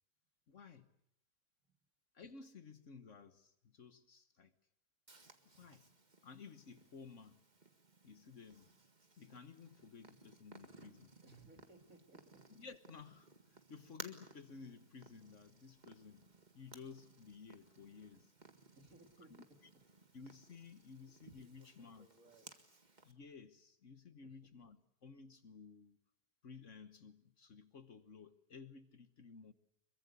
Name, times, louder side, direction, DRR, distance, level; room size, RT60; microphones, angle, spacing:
voice 1, 0.5-0.9 2.1-4.5 5.5-5.9 6.2-7.4 8.0-8.7 9.2-11.1 12.5-16.3 16.5-18.3 20.1-22.1 23.0-26.0 26.4-29.5, left 5 dB, 55° left, 1.5 m, -55 dB
Purr, 5.1-23.1, right 3 dB, 30° right, 1.9 m, -60 dB
voice 2, 11.2-12.4 18.7-19.6 21.0-21.1 21.4-22.5 24.2-24.3, right 2 dB, 60° right, 3.4 m, -63 dB
26.0 x 23.0 x 8.2 m
omnidirectional pair, 1.6 m